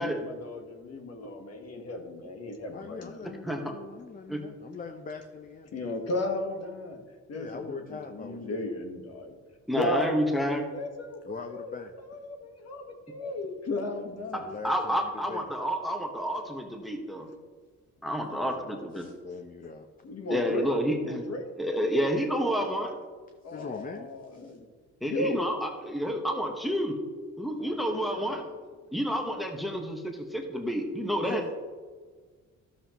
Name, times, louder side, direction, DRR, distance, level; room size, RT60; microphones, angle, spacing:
voice 1, 0.0-3.4 5.7-7.0 7.3-9.4 9.7-14.4 20.0-21.5 23.4-24.7 25.0-25.4, left 2 dB, 55° left, 4 dB, 1.5 m, -35 dB
voice 2, 2.7-5.8 7.3-8.7 11.3-11.9 14.3-15.0 15.3-15.4 18.4-19.9 23.5-24.5 27.6-28.5 28.8-28.9 31.2-31.5, left 4 dB, 30° left, 5 dB, 0.7 m, -42 dB
voice 3, 9.7-10.7 14.3-17.3 18.0-19.1 20.3-21.2 21.6-22.9 25.0-27.0 27.4-28.4 28.9-31.4, equal, ahead, 3 dB, 1.3 m, -29 dB
12.5 x 7.1 x 3.0 m, 1.5 s
cardioid pair, 90°, 30 cm